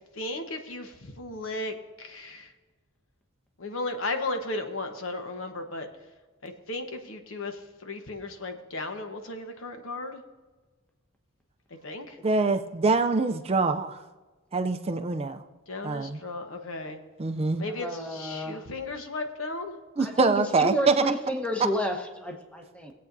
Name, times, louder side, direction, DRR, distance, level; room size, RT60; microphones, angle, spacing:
voice 1, 0.2-2.5 3.6-5.9 6.4-10.2 11.8-12.2 15.7-17.0 17.6-17.9 18.1-19.8, left 2 dB, 65° left, 5 dB, 1.1 m, -35 dB
voice 2, 12.2-14.0 14.5-15.4 15.8-16.2 17.2-17.6 20.0-21.0, right 3 dB, 30° right, 8 dB, 0.4 m, -24 dB
voice 3, 17.7-18.6 20.0-22.9, equal, 5° left, 3 dB, 1.0 m, -31 dB
19.0 x 8.4 x 2.7 m, 1.3 s
head